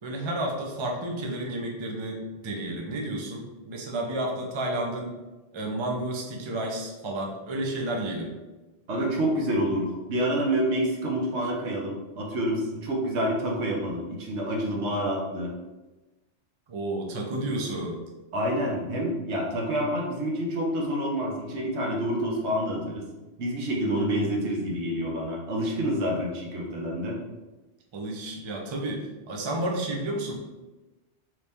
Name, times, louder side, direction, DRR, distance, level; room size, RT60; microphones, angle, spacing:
voice 1, 0.0-5.1 5.5-8.3 16.7-18.0 27.9-30.3, right 1 dB, 40° right, 0 dB, 0.4 m, -31 dB
voice 2, 8.9-15.5 18.3-23.1 23.4-27.2, equal, 70° right, -1 dB, 1.0 m, -28 dB
3.0 x 2.7 x 3.4 m, 1.1 s
omnidirectional pair, 1.2 m